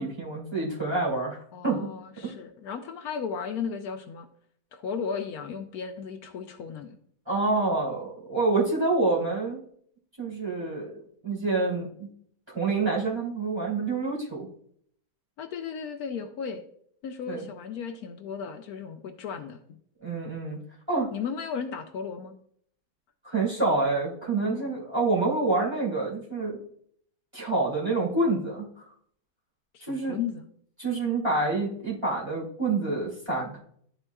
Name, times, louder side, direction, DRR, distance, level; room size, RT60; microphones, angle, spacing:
voice 1, 0.0-1.9 2.2-2.3 7.3-9.6 10.2-12.1 12.5-14.5 17.3-17.5 20.0-20.6 20.9-21.1 23.2-26.6 27.3-28.9 29.8-30.2 30.8-33.6, right 3 dB, 15° right, -7 dB, 2.6 m, -27 dB
voice 2, 1.5-4.3 4.7-7.0 15.4-16.6 17.0-19.6 21.1-22.4 24.4-24.7 29.7-30.5, left 6 dB, 75° left, 6 dB, 1.1 m, -35 dB
12.0 x 4.4 x 2.3 m, 0.64 s
omnidirectional pair, 1.6 m